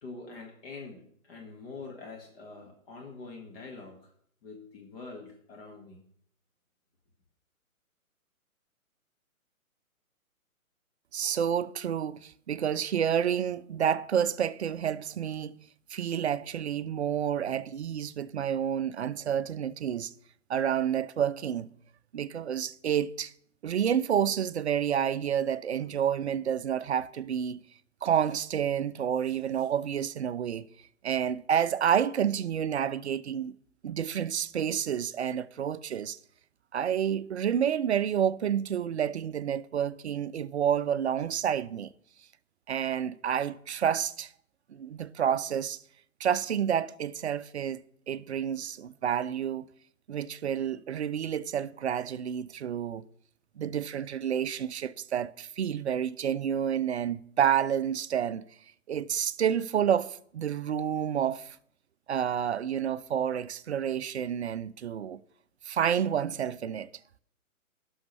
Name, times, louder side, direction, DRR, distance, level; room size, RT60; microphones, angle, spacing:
voice 1, 0.0-4.1 4.4-6.0, left 3 dB, 40° left, 1.7 m, -45 dB
voice 2, 11.1-15.5 15.9-20.1 20.5-21.7 22.1-23.3 23.6-27.6 28.0-30.7 31.0-33.5 33.8-36.2 36.7-41.9 42.7-44.3 44.7-45.8 46.2-49.6 50.1-53.0 53.6-58.4 58.9-61.6 62.1-65.2 65.7-66.9, right 9 dB, 50° right, 0.5 m, -29 dB
17.0 x 6.2 x 3.2 m
hypercardioid pair, 150°, 43 cm